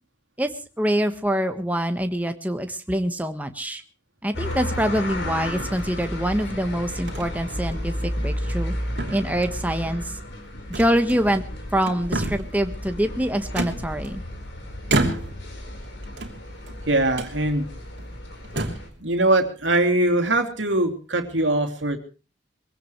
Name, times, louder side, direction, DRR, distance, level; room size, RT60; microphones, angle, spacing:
voice 1, 0.8-3.8 4.2-8.7 9.1-10.0 10.7-11.4 11.7-14.2, equal, 10° right, 7 dB, 1.4 m, -25 dB
sound 1, 4.3-18.9, equal, 70° left, 4.5 m, -33 dB
sound 2, 4.4-4.8 5.6-6.3 7.1-7.3 7.7-7.8 8.3-8.7 9.0-9.7 10.7-11.5 11.8-12.6 13.5-14.4 14.9-15.5 16.1-16.8 17.1-17.4 18.0-18.1 18.4-18.9, right 2 dB, 65° right, 3.0 m, -29 dB
voice 2, 16.9-17.7 19.0-22.0, right 2 dB, 80° right, 6 dB, 2.8 m, -22 dB
23.0 x 16.5 x 3.2 m, 0.35 s
head